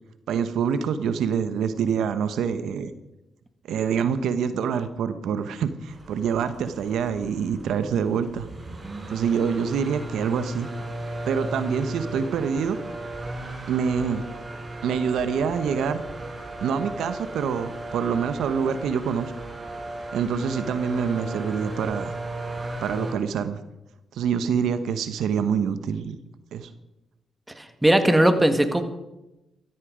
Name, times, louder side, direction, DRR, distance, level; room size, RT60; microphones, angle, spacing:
voice 1, 0.3-2.9 3.6-8.5 9.1-10.7 11.3-12.8 13.7-14.2 14.8-16.0 16.6-19.3 20.1-22.1 22.8-23.6 24.1-26.2 26.5-26.7, right 7 dB, 80° right, 11 dB, 1.0 m, -26 dB
sound 1, 5.9-23.1, right 2 dB, 30° right, 4.8 m, -36 dB
voice 2, 27.6-28.8, right 1 dB, 10° right, 8 dB, 1.9 m, -19 dB
14.0 x 13.5 x 5.1 m, 0.94 s
cardioid pair, 65°, 0 cm